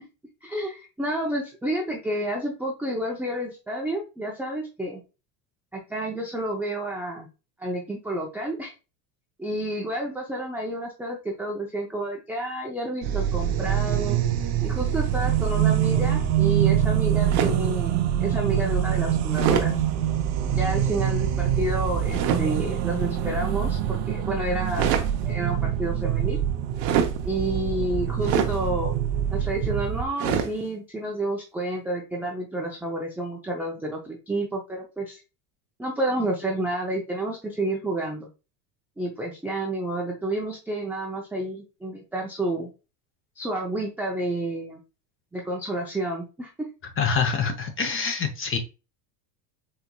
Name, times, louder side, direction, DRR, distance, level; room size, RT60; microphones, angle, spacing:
voice 1, 0.4-5.0 5.7-7.3 7.6-8.7 9.4-14.2 14.6-19.7 20.5-24.9 25.2-26.4 27.2-28.9 29.3-35.2 35.8-38.3 39.0-42.7 43.4-44.8 45.3-46.5, right 1 dB, 5° right, -2 dB, 0.4 m, -30 dB
sound 1, 13.0-30.1, right 10 dB, 50° right, 0.7 m, -25 dB
sound 2, 17.3-17.7 19.3-19.7 22.1-22.4 24.6-25.1 26.8-27.2 28.2-28.6 30.2-30.5, right 7 dB, 80° right, 0.8 m, -24 dB
voice 2, 47.0-48.6, left 5 dB, 25° left, 6 dB, 0.7 m, -25 dB
4.3 x 2.8 x 2.2 m, 0.31 s
supercardioid pair, 110°, 50 cm